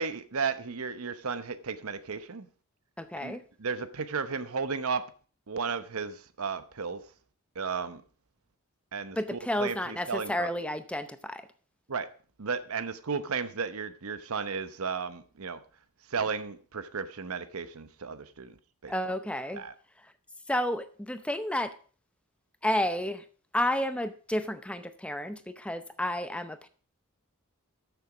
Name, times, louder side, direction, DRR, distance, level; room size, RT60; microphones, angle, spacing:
voice 1, 0.0-2.5 3.2-5.1 5.5-7.0 7.6-8.0 8.9-10.5 11.9-12.1 12.4-15.6 16.1-18.6 18.8-18.9 19.5-19.7, right 5 dB, 80° right, 0.9 m, -34 dB
voice 2, 3.0-3.4 9.2-11.4 18.9-19.6 20.5-21.7 22.6-23.2 23.5-26.7, left 1 dB, 5° left, 0.6 m, -31 dB
13.0 x 7.0 x 4.9 m
head